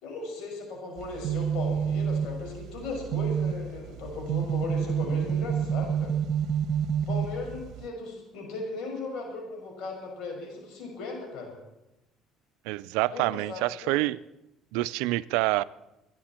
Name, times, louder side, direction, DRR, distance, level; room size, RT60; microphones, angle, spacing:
voice 1, 0.0-6.1 7.1-11.5 13.1-14.0, left 3 dB, 75° left, 1 dB, 5.9 m, -37 dB
sound 1, 1.0-7.9, right 8 dB, 65° right, 1.2 m, -29 dB
voice 2, 12.7-14.2 14.7-15.6, right 19 dB, 90° right, 17 dB, 0.4 m, -27 dB
26.0 x 10.5 x 4.4 m, 0.95 s
cardioid pair, 100°, 0 cm